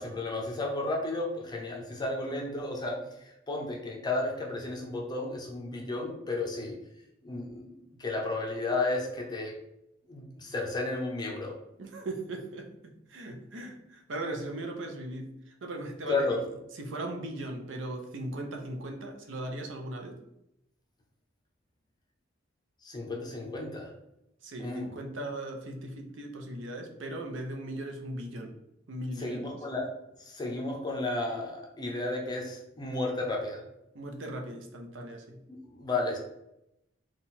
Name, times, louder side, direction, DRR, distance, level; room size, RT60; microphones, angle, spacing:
voice 1, 0.0-6.8 7.2-9.5 10.1-11.6 16.1-16.4 22.8-23.9 24.6-25.0 29.2-29.9 30.2-33.6 35.5-36.2, left 2 dB, 20° left, 0 dB, 0.5 m, -33 dB
voice 2, 11.8-16.4 16.7-20.2 24.4-28.5 28.9-29.5 33.9-35.4, right 1 dB, 70° right, 3 dB, 0.7 m, -38 dB
3.8 x 2.4 x 4.1 m, 0.85 s
head